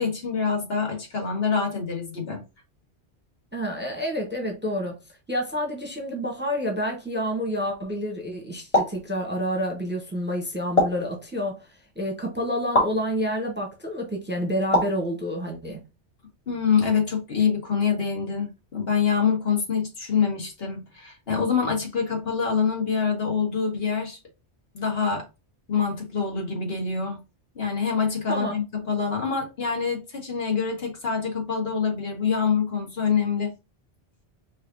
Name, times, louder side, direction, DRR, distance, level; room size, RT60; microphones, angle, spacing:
voice 1, 0.0-2.4 16.5-24.2 24.7-25.2 25.7-27.2 27.5-33.5, left 6 dB, 60° left, 1.6 m, -25 dB
voice 2, 3.5-5.0 5.3-11.7 12.0-15.8 28.3-28.5, equal, 10° right, 1.0 m, -28 dB
sound 1, 8.7-9.0 10.8-11.1 12.7-13.0 14.7-15.0, left 1 dB, 30° left, 1.6 m, -22 dB
5.1 x 2.7 x 2.6 m
omnidirectional pair, 1.1 m